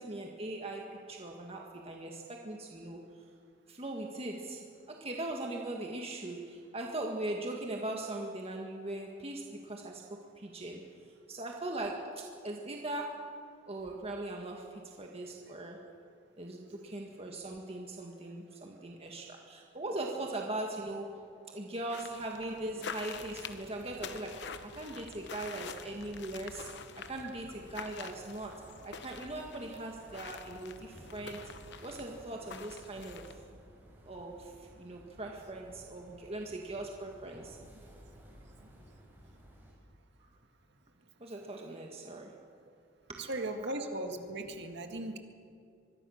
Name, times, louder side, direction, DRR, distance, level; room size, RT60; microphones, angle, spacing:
voice 1, 0.0-3.0 3.7-10.1 10.4-10.8 11.3-13.3 13.7-15.9 16.4-21.2 21.5-31.5 31.8-33.4 34.0-37.6 40.2-40.3 41.2-42.4 43.1-43.4, right 2 dB, 30° right, 1 dB, 1.8 m, -40 dB
sound 1, 21.9-33.5, left 6 dB, 60° left, 1.0 m, -47 dB
sound 2, 23.1-39.7, equal, 10° right, 5.7 m, -56 dB
voice 2, 43.2-45.2, right 1 dB, 60° right, 5 dB, 2.0 m, -37 dB
24.5 x 21.5 x 6.5 m, 2.4 s
head